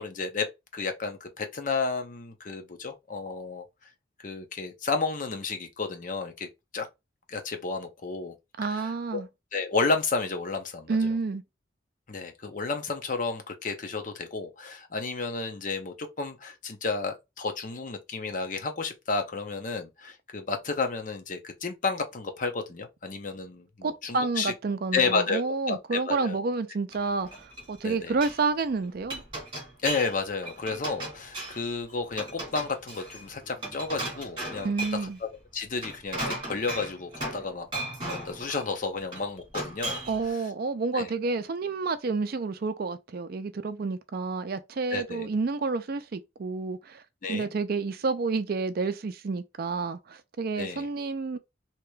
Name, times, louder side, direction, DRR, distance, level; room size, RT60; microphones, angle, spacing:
voice 1, 0.0-3.6 4.2-6.9 7.3-8.3 8.6-9.2 9.5-11.1 12.1-24.5 24.9-25.4 25.7-26.4 27.8-28.1 29.8-35.1 35.5-37.7 38.1-40.0 40.3-40.4 40.9-41.1 44.9-45.3 47.2-47.5 50.6-50.9, left 4 dB, 45° left, 0.6 m, -32 dB
voice 2, 8.6-9.3 10.9-11.4 23.8-29.2 34.6-35.2 40.1-47.0 47.3-51.4, right 4 dB, 55° right, 0.4 m, -29 dB
Glass, 26.9-27.8 28.1-28.4 28.8-30.2 30.4-31.7 32.1-35.1 35.6-37.5 37.7-38.7 39.1-40.2, right 1 dB, 25° right, 2.0 m, -36 dB
4.6 x 2.9 x 2.3 m
head